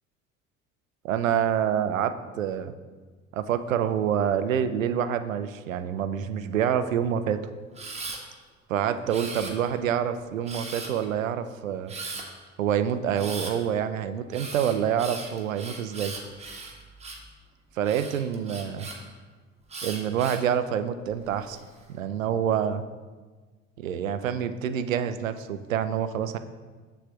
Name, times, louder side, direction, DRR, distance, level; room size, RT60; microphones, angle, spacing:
voice 1, 1.0-2.7 3.3-7.4 8.7-11.9 12.6-16.1 17.8-18.9 19.8-21.6 21.9-22.8 23.8-26.4, right 9 dB, 80° right, 11 dB, 0.5 m, -27 dB
Camera, 7.7-8.2 9.1-9.8 10.5-11.0 11.9-12.2 13.1-13.5 14.3-17.3 17.8-19.0 19.7-20.5 21.1-21.6, right 3 dB, 15° right, 1.2 m, -38 dB
6.8 x 3.2 x 6.1 m, 1.4 s
figure-of-eight pair, 65°, 39 cm